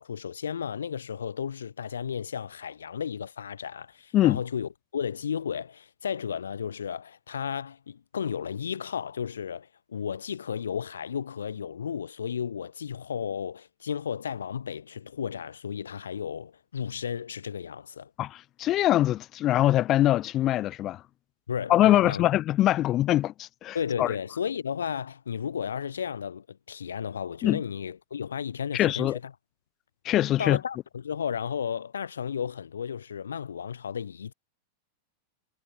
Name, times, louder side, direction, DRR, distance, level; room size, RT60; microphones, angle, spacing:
voice 1, 0.0-18.1 21.5-22.3 23.7-29.3 30.4-34.3, left 7 dB, 70° left, 3.4 m, -33 dB
voice 2, 18.2-21.0 21.7-24.1 27.4-27.6 28.7-29.2 30.0-30.6, left 14 dB, 35° left, 2.3 m, -23 dB
figure-of-eight pair, 90°, 0 cm